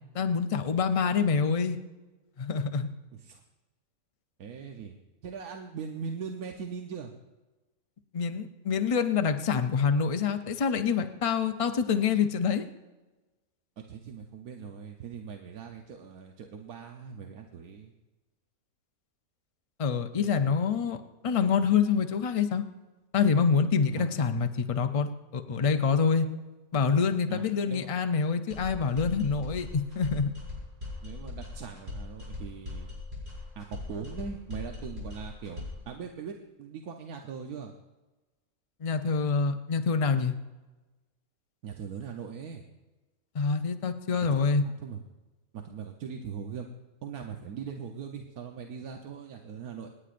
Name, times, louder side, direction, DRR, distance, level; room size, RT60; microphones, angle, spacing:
voice 1, 0.1-1.8 2.4-2.9 8.1-12.7 19.8-22.6 23.1-26.3 26.7-30.3 38.8-40.3 43.3-44.6, left 6 dB, 55° left, 7 dB, 0.3 m, -26 dB
voice 2, 4.4-5.0 5.2-7.1 13.8-17.9 24.0-24.2 27.3-27.9 31.0-32.9 33.6-37.7 41.6-42.6 44.6-45.0 45.5-46.7 47.0-49.9, right 6 dB, 85° right, 3 dB, 1.4 m, -40 dB
sound 1, 28.5-35.9, left 3 dB, 35° right, 5.9 m, -40 dB
27.5 x 9.9 x 2.5 m, 1.2 s
omnidirectional pair, 1.5 m